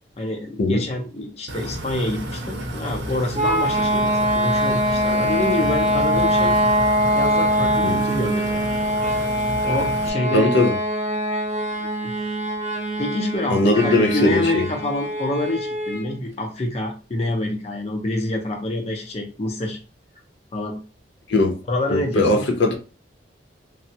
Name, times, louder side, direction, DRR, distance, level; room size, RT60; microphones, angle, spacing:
voice 1, 0.2-6.6 7.1-8.7 9.6-10.5 11.8-12.2 13.0-19.8 20.5-20.8 21.7-22.4, left 1 dB, 35° left, 0.5 m, -27 dB
sound 1, 1.5-10.1, right 1 dB, 80° right, 0.7 m, -31 dB
sound 2, 3.3-16.1, equal, 35° right, 0.6 m, -23 dB
voice 2, 10.3-10.7 13.5-14.6 21.3-21.6 21.9-22.7, left 2 dB, 80° left, 0.6 m, -19 dB
3.2 x 2.0 x 2.8 m
head